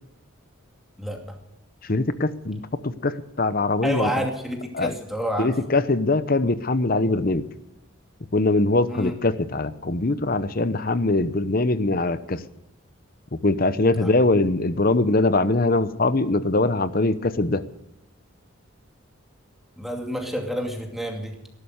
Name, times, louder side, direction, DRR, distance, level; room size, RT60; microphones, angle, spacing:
voice 1, 1.0-1.4 3.8-5.5 8.9-9.1 14.0-14.1 19.8-21.4, equal, ahead, 1 dB, 2.5 m, -29 dB
voice 2, 1.8-4.3 4.7-4.9 5.4-7.4 8.3-12.4 13.4-17.6, left 2 dB, 45° left, 13 dB, 0.9 m, -22 dB
18.5 x 11.5 x 6.5 m, 0.92 s
head